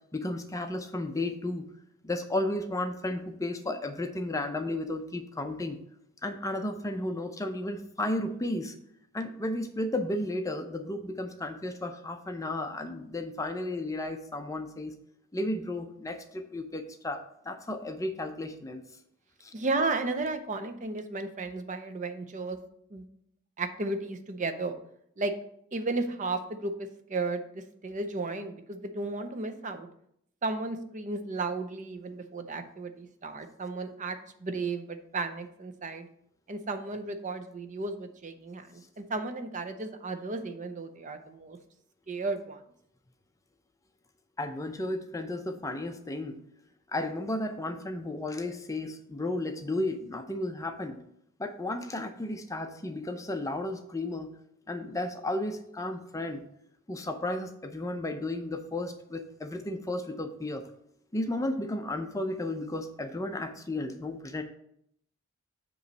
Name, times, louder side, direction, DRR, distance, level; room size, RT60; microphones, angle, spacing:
voice 1, 0.1-1.7 2.0-5.8 6.2-8.7 9.1-14.9 15.3-18.8 19.4-19.5 44.4-46.4 46.9-51.0 51.4-54.3 54.7-56.4 56.9-60.7 61.1-64.4, left 1 dB, 15° left, 6 dB, 0.5 m, -33 dB
voice 2, 19.5-22.6 22.9-23.1 23.6-24.7 25.2-25.3 25.7-29.9 30.4-36.1 36.5-41.6 42.1-42.6, right 3 dB, 35° right, 7 dB, 0.6 m, -34 dB
7.7 x 3.1 x 6.3 m, 0.72 s
head